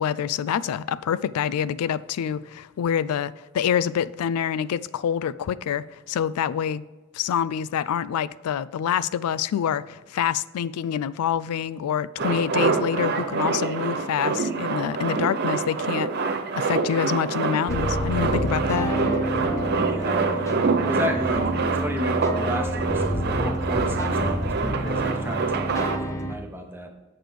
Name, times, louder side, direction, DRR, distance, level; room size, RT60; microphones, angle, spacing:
voice 1, 0.0-6.8 7.1-16.1 16.6-18.9, left 8 dB, 80° left, 0.3 m, -26 dB
Male speech man speaking, 12.2-26.0, right 4 dB, 45° right, 0.6 m, -26 dB
sound 1, 17.7-26.4, equal, 15° left, 0.5 m, -29 dB
voice 2, 19.9-26.9, equal, 10° right, 0.8 m, -33 dB
7.8 x 6.6 x 3.2 m
head